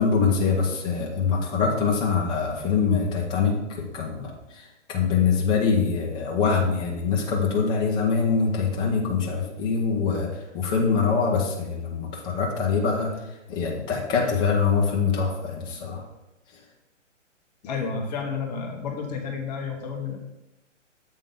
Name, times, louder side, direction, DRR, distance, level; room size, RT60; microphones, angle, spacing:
voice 1, 0.0-13.1 13.5-16.0, left 5 dB, 10° left, -1 dB, 0.7 m, -24 dB
voice 2, 17.6-20.2, left 5 dB, 35° left, 2 dB, 1.0 m, -31 dB
7.5 x 3.7 x 5.4 m, 0.94 s
hypercardioid pair, 150°, 38 cm